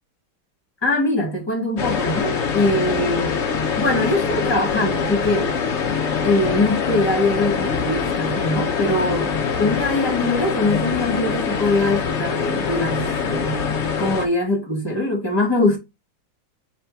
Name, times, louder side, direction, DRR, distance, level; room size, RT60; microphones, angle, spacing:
voice 1, 0.8-3.4 3.7-5.6 6.2-13.7 14.0-15.8, left 2 dB, 15° left, 1.7 m, -22 dB
sound 1, 1.8-14.3, left 6 dB, 65° left, 0.6 m, -24 dB
3.4 x 3.3 x 4.5 m
omnidirectional pair, 2.2 m